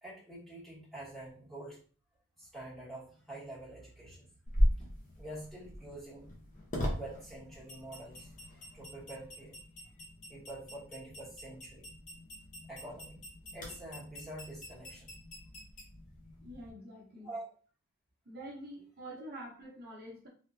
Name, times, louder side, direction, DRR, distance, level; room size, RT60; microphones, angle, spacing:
voice 1, 0.0-1.8 2.4-4.3 5.2-6.3 7.0-9.6 10.3-12.0 12.7-13.2 13.5-15.1 17.2-17.5, right 1 dB, ahead, -9 dB, 1.6 m, -46 dB
sound 1, 4.5-16.7, equal, 35° left, 0.9 m, -38 dB
voice 2, 16.4-17.3 18.3-20.3, right 1 dB, 45° right, -2 dB, 0.9 m, -46 dB
3.3 x 2.8 x 2.6 m, 0.41 s
head